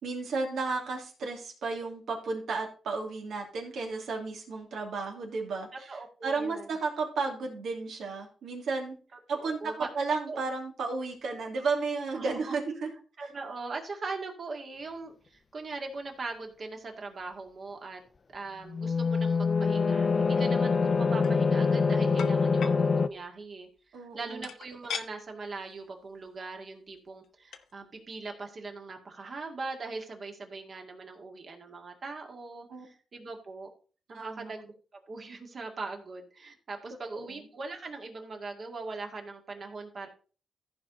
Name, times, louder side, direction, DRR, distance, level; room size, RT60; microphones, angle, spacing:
voice 1, 0.0-5.9 6.2-9.0 9.3-12.9 23.9-24.5 32.7-32.9 34.1-34.5 37.1-37.4, right 4 dB, 80° right, 1 dB, 2.6 m, -33 dB
voice 2, 5.9-6.7 9.3-9.9 10.3-10.4 12.1-12.5 13.2-18.0 18.3-23.7 24.0-33.7 34.1-34.7 35.1-40.1, right 3 dB, 50° right, 3 dB, 2.1 m, -40 dB
sound 1, 18.7-23.1, left 5 dB, 40° left, 0.6 m, -25 dB
sound 2, 21.0-21.4 22.2-22.8 24.4-25.1 25.6-25.7 26.1-26.3 27.2-27.3 27.5-27.7, left 7 dB, 80° left, 0.8 m, -38 dB
14.5 x 5.0 x 4.0 m, 0.38 s
cardioid pair, 90°, 0 cm